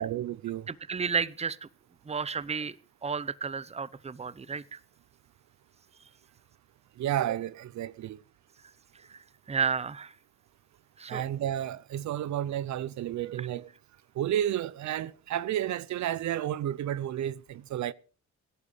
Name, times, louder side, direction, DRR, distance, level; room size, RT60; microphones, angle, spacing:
voice 1, 0.0-0.7 7.0-8.2 11.1-13.7 14.1-17.9, right 11 dB, 70° right, 0.7 m, -31 dB
voice 2, 0.7-1.7 2.1-2.8 3.0-4.8 9.1-9.2 9.5-10.1 11.0-11.2, right 5 dB, 20° right, 0.8 m, -32 dB
17.0 x 11.5 x 5.0 m
cardioid pair, 90°, 30 cm